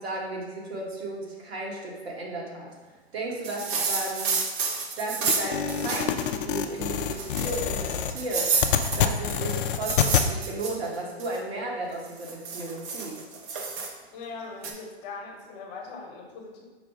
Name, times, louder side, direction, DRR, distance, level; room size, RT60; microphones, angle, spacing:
voice 1, 0.0-2.7 3.1-4.4 5.0-8.5 9.0-13.2, right 2 dB, 70° right, -3 dB, 1.5 m, -34 dB
sound 1, 3.4-6.3 6.6-6.7 7.1-7.7 8.2-11.4 12.0-13.9 14.6-14.7, right 5 dB, 30° right, 0.6 m, -30 dB
sound 2, 5.3-10.3, left 8 dB, 55° left, 0.4 m, -27 dB
voice 2, 14.1-16.6, left 4 dB, 40° left, 0 dB, 1.0 m, -40 dB
4.8 x 2.3 x 4.8 m, 1.3 s
hypercardioid pair, 130°, 32 cm